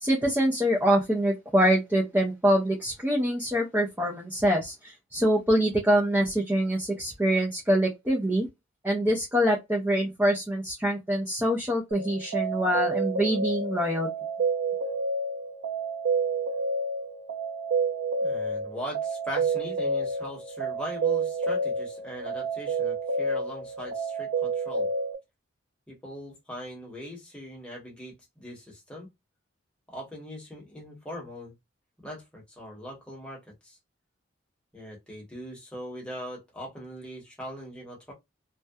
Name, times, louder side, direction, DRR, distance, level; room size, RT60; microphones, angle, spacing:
voice 1, 0.0-8.5 8.8-14.1, equal, 10° right, 0.4 m, -25 dB
sound 1, 11.9-25.1, right 3 dB, 85° right, 0.5 m, -29 dB
voice 2, 18.2-24.9 25.9-29.1 29.9-31.5 32.0-33.8 34.7-38.1, equal, 5° left, 1.0 m, -40 dB
2.7 x 2.1 x 2.2 m
head